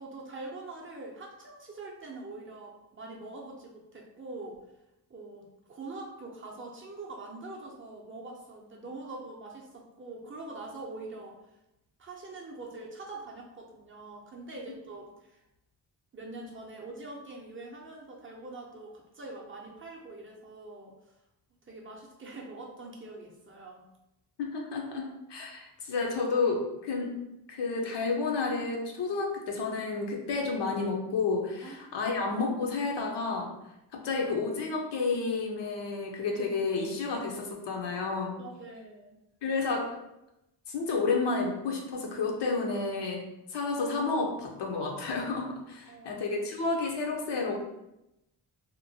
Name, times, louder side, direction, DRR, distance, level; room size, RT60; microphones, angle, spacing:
voice 1, 0.0-4.6 5.1-11.4 12.0-15.4 16.1-21.0 21.7-23.8 31.6-32.1 38.4-39.1 45.9-46.2, right 2 dB, 30° right, -2 dB, 0.5 m, -44 dB
voice 2, 24.4-27.2 27.5-33.5 33.9-38.4 39.4-39.9 40.7-43.2 43.5-47.7, left 4 dB, 75° left, 0 dB, 0.7 m, -31 dB
2.9 x 2.1 x 2.7 m, 0.90 s
wide cardioid pair, 110°, 43 cm